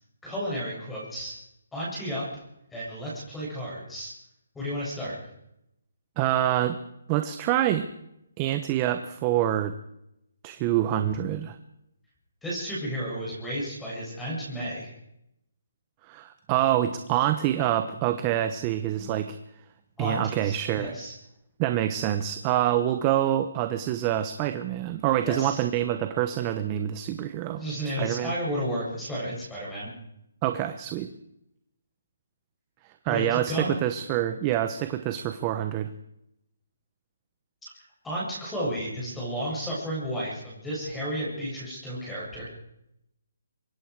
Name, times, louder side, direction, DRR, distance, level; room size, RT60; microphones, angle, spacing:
voice 1, 0.2-1.4 1.7-2.4 2.7-4.1 4.5-5.2 12.4-14.9 20.0-21.1 25.2-25.6 27.5-29.9 33.1-33.7 38.0-42.5, equal, 5° left, -6 dB, 7.8 m, -32 dB
voice 2, 6.2-6.8 7.1-7.9 8.4-9.7 10.4-11.6 16.1-19.4 20.0-20.9 21.6-27.6 28.0-28.3 30.4-31.1 33.0-35.9, right 12 dB, 20° right, 9 dB, 1.0 m, -26 dB
24.5 x 22.0 x 4.9 m, 0.81 s
hypercardioid pair, 165°, 0 cm